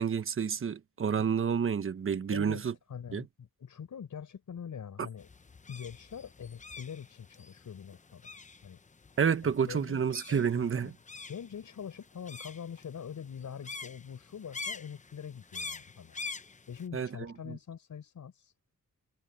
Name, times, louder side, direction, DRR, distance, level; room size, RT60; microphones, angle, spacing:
voice 1, 0.0-2.7 3.1-3.2 5.0-5.1 9.2-10.9 16.9-17.1, right 7 dB, 40° right, 1.1 m, -29 dB
voice 2, 2.3-2.6 2.9-5.3 5.7-8.3 8.6-8.8 9.4-10.9 11.3-16.1 16.7-18.5, left 7 dB, 65° left, 6.3 m, -44 dB
sound 1, 5.2-16.9, left 4 dB, 25° left, 0.8 m, -46 dB
wide cardioid pair, 140°, 32 cm